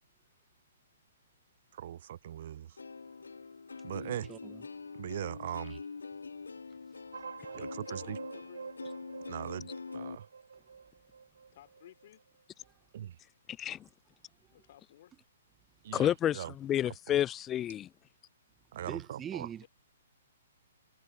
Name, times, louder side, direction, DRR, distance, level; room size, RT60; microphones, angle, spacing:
voice 1, 1.7-2.8 3.8-4.3 5.0-5.8 7.5-8.2 9.3-10.3 12.9-13.1 15.8-16.5 17.1-17.2 18.7-19.5, right 11 dB, 55° right, 0.6 m, -40 dB
Plucked string instrument, 2.8-10.2, left 4 dB, 85° left, 2.4 m, -45 dB
voice 2, 3.9-4.7 5.7-5.8 18.9-19.7, right 9 dB, 20° right, 0.9 m, -43 dB
sound 1, 7.1-12.1, right 5 dB, 80° right, 3.4 m, -47 dB
voice 3, 7.4-8.7 11.5-12.2 14.5-15.2 19.6-19.7, left 12 dB, 50° left, 3.8 m, -55 dB
voice 4, 15.9-17.9, left 11 dB, 20° left, 0.6 m, -30 dB
hypercardioid pair, 125°, 0 cm